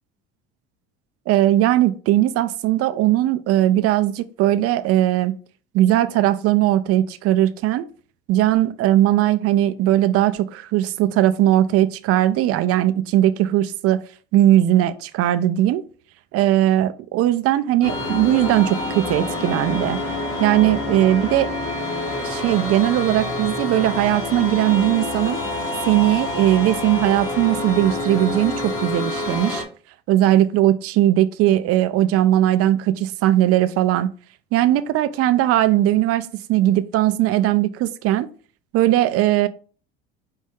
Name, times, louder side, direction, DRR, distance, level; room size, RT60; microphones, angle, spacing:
voice 1, 1.3-5.3 5.7-7.9 8.3-14.0 14.3-15.8 16.3-20.0 20.4-21.5 22.2-25.4 25.8-29.6 30.1-34.1 34.5-38.3 38.7-39.5, right 13 dB, 50° right, 0.5 m, -19 dB
sound 1, 17.8-29.6, left 2 dB, 45° left, 1.8 m, -27 dB
5.4 x 2.6 x 3.6 m
hypercardioid pair, 75°, 30 cm